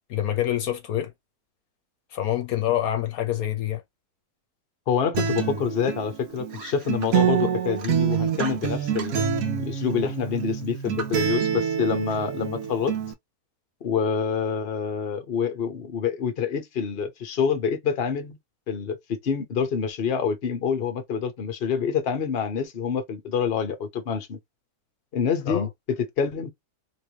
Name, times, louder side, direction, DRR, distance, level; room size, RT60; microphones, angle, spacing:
voice 1, 0.1-1.1 2.1-3.8 25.5-25.7, left 12 dB, 70° left, 1.2 m, -26 dB
voice 2, 4.9-9.2 9.6-12.9 13.8-18.4 18.7-24.4 25.1-26.5, left 6 dB, 45° left, 1.0 m, -27 dB
Acoustic guitar, 5.1-13.1, right 8 dB, 70° right, 1.2 m, -27 dB
3.3 x 3.1 x 2.8 m
omnidirectional pair, 1.6 m